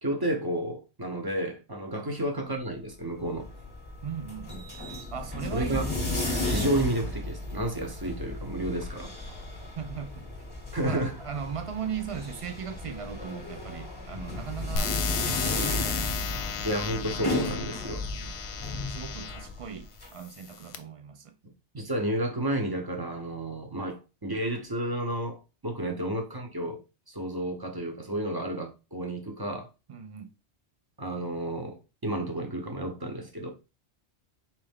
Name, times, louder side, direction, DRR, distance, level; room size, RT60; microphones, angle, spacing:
voice 1, 0.0-3.5 5.5-5.9 6.4-9.1 10.7-11.2 16.6-18.0 21.7-26.8 27.1-29.7 31.0-33.5, right 1 dB, 20° right, 0.8 m, -31 dB
sound 1, 3.0-20.1, left 2 dB, 20° left, 1.0 m, -35 dB
voice 2, 4.0-4.7 5.1-6.2 9.8-10.3 10.8-16.7 18.1-18.3 18.9-21.3 25.8-26.0 29.9-30.3, right 7 dB, 60° right, 0.3 m, -38 dB
sound 2, 14.8-19.5 20.2-20.8, left 7 dB, 70° left, 0.8 m, -34 dB
4.3 x 3.3 x 3.5 m
omnidirectional pair, 1.2 m